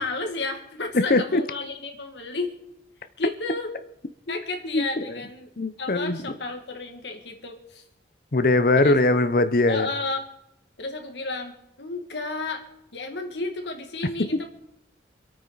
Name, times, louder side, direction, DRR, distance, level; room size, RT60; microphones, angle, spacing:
voice 1, 0.0-2.5 3.2-3.7 4.3-5.5 5.8-7.8 8.8-9.0 9.7-10.2 10.8-12.7 12.9-14.5, left 3 dB, 80° left, 2.1 m, -32 dB
voice 2, 0.9-1.4 4.3-4.4 4.7-5.2 5.6-6.2 8.3-9.9, left 2 dB, 50° left, 0.8 m, -21 dB
26.0 x 8.8 x 4.0 m
head